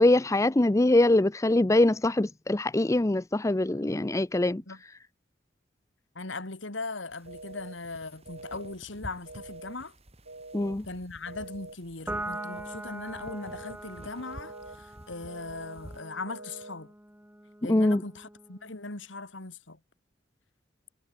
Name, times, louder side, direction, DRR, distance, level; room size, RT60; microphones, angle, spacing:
voice 1, 0.0-4.6 10.5-10.9 17.7-18.0, left 1 dB, 15° left, 0.5 m, -23 dB
voice 2, 6.1-9.9 10.9-16.9 17.6-19.8, left 3 dB, 75° left, 2.7 m, -39 dB
sound 1, 7.1-16.0, equal, 35° right, 3.9 m, -50 dB
sound 2, 7.3-7.8 8.3-8.8 9.3-9.8 10.3-10.8 11.3-11.8 12.3-12.8 13.3-13.8 14.3-14.8 15.3-15.8 16.3-16.8, right 2 dB, 65° right, 3.7 m, -45 dB
Piano, 12.1-18.8, right 1 dB, 10° right, 5.0 m, -42 dB
head